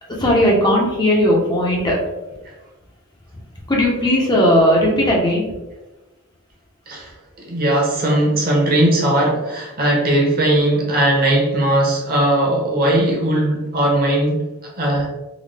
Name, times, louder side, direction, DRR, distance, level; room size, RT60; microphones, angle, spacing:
voice 1, 0.1-2.0 3.3-3.4 3.7-5.5, equal, 20° left, -3 dB, 0.6 m, -17 dB
voice 2, 7.4-14.4 14.8-15.1, right 1 dB, 40° right, -1 dB, 0.8 m, -18 dB
3.8 x 2.1 x 3.3 m, 1.1 s
head